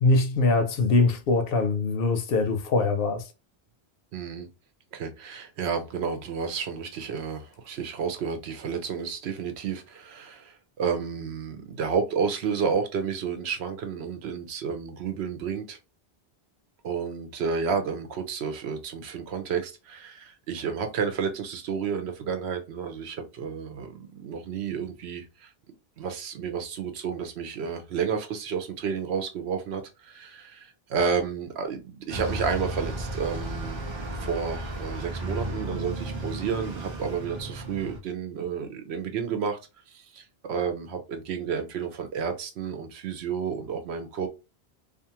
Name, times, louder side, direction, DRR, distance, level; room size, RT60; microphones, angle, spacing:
voice 1, 0.0-3.2, left 3 dB, 70° left, 0.7 m, -23 dB
voice 2, 4.1-4.5 4.9-15.8 16.8-25.5 26.0-33.8 34.2-39.6 39.9-44.3, right 6 dB, 85° right, 0.9 m, -31 dB
Bus, 32.1-38.0, right 1 dB, 40° right, 0.4 m, -34 dB
2.5 x 2.4 x 2.8 m
omnidirectional pair, 1.1 m